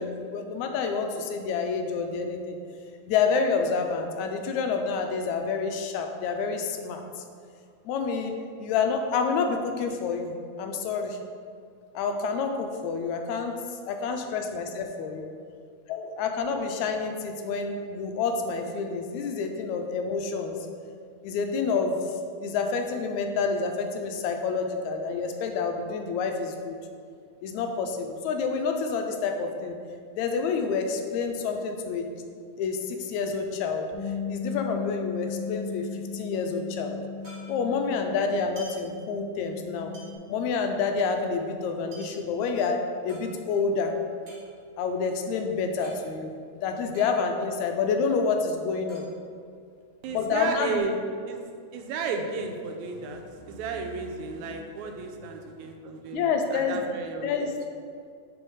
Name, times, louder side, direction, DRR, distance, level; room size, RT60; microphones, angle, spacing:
voice 1, 0.0-2.6 3.1-7.2 7.9-11.2 12.0-13.6 13.9-15.3 15.9-20.6 21.2-22.0 22.4-26.8 27.4-29.8 30.2-32.1 32.6-33.9 34.3-37.0 37.5-39.9 40.3-43.9 44.8-46.3 46.6-49.1 50.1-50.8 56.1-56.9 57.2-57.5, left 5 dB, 85° left, 5 dB, 1.9 m, -28 dB
sound 1, 33.2-34.9 35.2-35.3 35.5-37.9 38.3-39.6 39.9-43.8 44.1-46.0 46.3-46.4 46.6-47.6 47.9-50.0 50.4-51.2, equal, 35° right, 1.6 m, -51 dB
Bass guitar, 33.9-40.2, left 5 dB, 60° left, 2.4 m, -37 dB
voice 2, 50.0-51.0 51.3-51.4 51.7-57.5, right 4 dB, 85° right, 4 dB, 1.9 m, -33 dB
6.4 x 4.2 x 4.7 m, 2.2 s
omnidirectional pair, 3.3 m